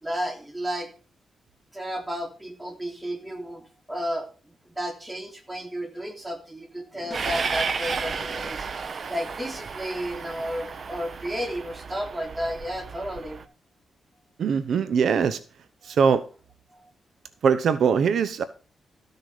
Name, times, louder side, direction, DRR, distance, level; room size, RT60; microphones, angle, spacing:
voice 1, 0.0-0.9 1.7-3.6 3.9-4.3 4.7-8.7 9.1-13.4, equal, 15° right, 3.0 m, -32 dB
sound 1, 7.1-7.6, equal, 5° left, 2.4 m, -43 dB
Train, 7.1-13.4, right 5 dB, 45° right, 1.0 m, -33 dB
voice 2, 14.4-15.4 15.8-16.2 17.4-18.4, right 6 dB, 70° right, 0.7 m, -21 dB
14.0 x 6.6 x 4.9 m
cardioid pair, 110°, 0 cm